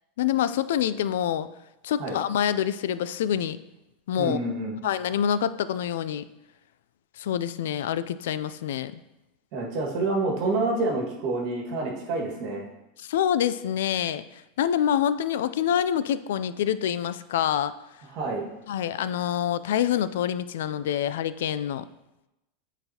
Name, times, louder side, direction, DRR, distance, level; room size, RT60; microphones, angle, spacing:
voice 1, 0.2-1.5 1.8-3.6 4.1-4.4 4.8-6.3 7.2-8.9 13.0-17.7 18.7-21.9, left 10 dB, 85° left, 15 dB, 0.3 m, -26 dB
voice 2, 4.2-4.8 9.5-12.6 18.1-18.5, right 2 dB, 50° right, -1 dB, 1.7 m, -28 dB
9.1 x 4.0 x 2.8 m, 0.93 s
supercardioid pair, 155°, 0 cm